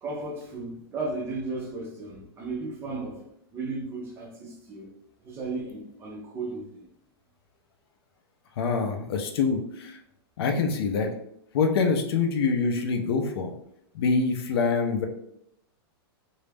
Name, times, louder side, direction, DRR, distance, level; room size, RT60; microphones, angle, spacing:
voice 1, 0.0-3.2 3.5-4.9 5.2-6.9, right 3 dB, 20° right, 0.4 m, -35 dB
voice 2, 8.6-10.0 10.4-11.1 11.5-13.5 13.9-15.1, left 4 dB, 65° left, 0.5 m, -25 dB
2.3 x 2.0 x 3.2 m
supercardioid pair, 160°, 14 cm